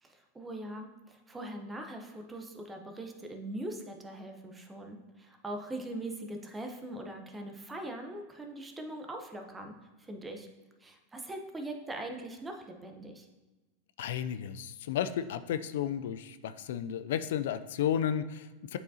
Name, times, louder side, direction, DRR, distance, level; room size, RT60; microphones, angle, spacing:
voice 1, 0.0-10.5 10.8-13.3, right 1 dB, 15° right, 4 dB, 0.8 m, -41 dB
voice 2, 14.0-18.8, left 9 dB, 75° left, 12 dB, 0.3 m, -33 dB
7.9 x 4.7 x 2.8 m, 1.2 s
hypercardioid pair, 120°, 0 cm